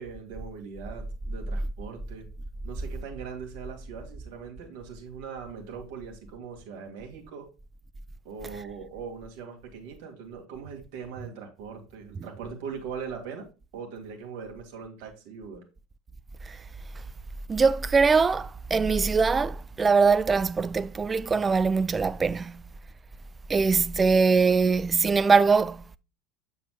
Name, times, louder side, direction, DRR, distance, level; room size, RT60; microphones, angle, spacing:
voice 1, 0.0-2.3 2.6-7.5 8.2-13.5 13.7-15.6, right 6 dB, 60° right, 2.0 m, -40 dB
voice 2, 17.5-22.6 23.5-26.0, right 4 dB, 20° right, 0.4 m, -22 dB
7.3 x 6.9 x 2.3 m
hypercardioid pair, 80°, 0 cm